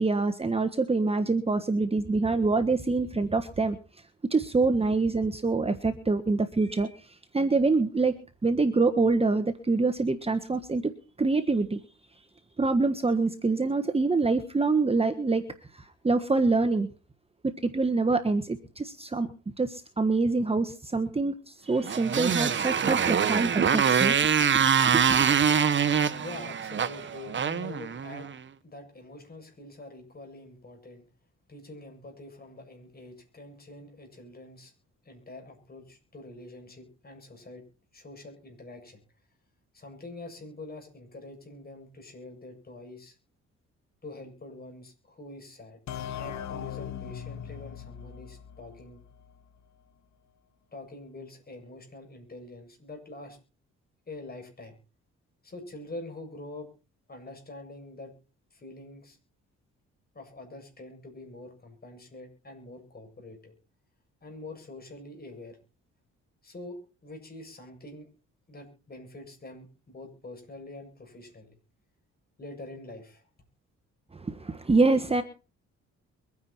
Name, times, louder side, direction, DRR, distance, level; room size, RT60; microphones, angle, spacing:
voice 1, 0.0-3.8 4.3-6.9 7.3-8.1 8.4-10.9 11.2-11.8 12.6-15.4 15.7-16.9 17.4-19.3 19.6-24.2 24.9-25.2 74.1-75.2, right 3 dB, 20° right, 8 dB, 1.4 m, -25 dB
Motorcycle, 21.8-28.4, right 7 dB, 40° right, 1.2 m, -24 dB
voice 2, 26.2-28.3 28.6-31.0 31.5-34.7 35.0-37.6 37.9-39.0 39.7-43.2 44.0-45.8 46.2-49.0 50.7-53.4 54.1-54.8 55.4-56.7 57.1-58.1 58.5-59.2 60.1-63.5 64.2-65.6 66.4-68.1 68.5-71.6 72.4-73.2, left 2 dB, 30° left, 4 dB, 7.4 m, -45 dB
sound 1, 45.9-49.4, left 9 dB, 65° left, 1.2 m, -39 dB
23.0 x 9.7 x 4.4 m, 0.35 s
cardioid pair, 90°, 30 cm